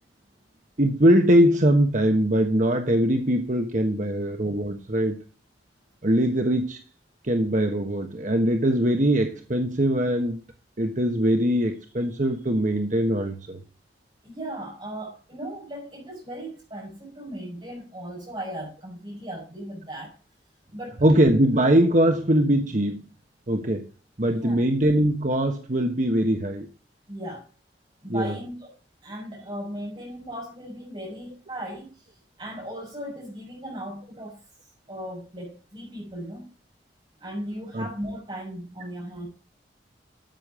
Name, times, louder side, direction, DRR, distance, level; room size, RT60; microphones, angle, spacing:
voice 1, 0.8-5.2 6.0-6.8 7.2-10.4 10.8-13.6 21.0-23.0 23.5-23.9 24.2-26.7 28.1-28.3 37.7-37.9, right 1 dB, 45° right, 1.3 m, -22 dB
voice 2, 14.2-20.2 20.7-21.0 24.3-24.6 27.1-27.5 28.0-28.7 29.0-36.5 37.2-39.3, right 1 dB, 30° right, 5.9 m, -37 dB
13.0 x 7.3 x 5.0 m
head